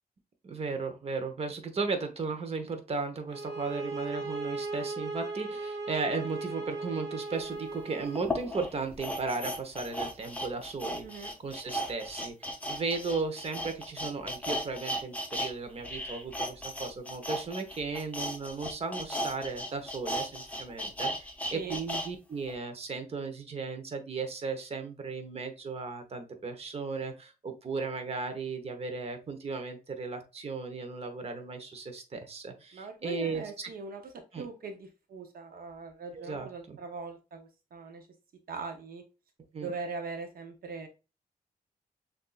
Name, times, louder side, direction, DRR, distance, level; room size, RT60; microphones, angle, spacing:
voice 1, 0.4-33.7 34.3-34.5 36.1-36.8 39.5-39.7, right 4 dB, 40° right, 6 dB, 0.9 m, -36 dB
sound 1, 3.3-8.3, right 3 dB, 20° right, 1.7 m, -37 dB
sound 2, 7.4-7.5 8.1-15.5 15.8-22.1 22.5-22.6, equal, 10° left, 0.9 m, -36 dB
voice 2, 11.0-11.3 21.5-21.8 32.7-38.1 38.5-39.0 39.6-40.9, right 4 dB, 80° right, 5 dB, 0.8 m, -41 dB
6.6 x 2.6 x 2.3 m, 0.29 s
wide cardioid pair, 115°, 15 cm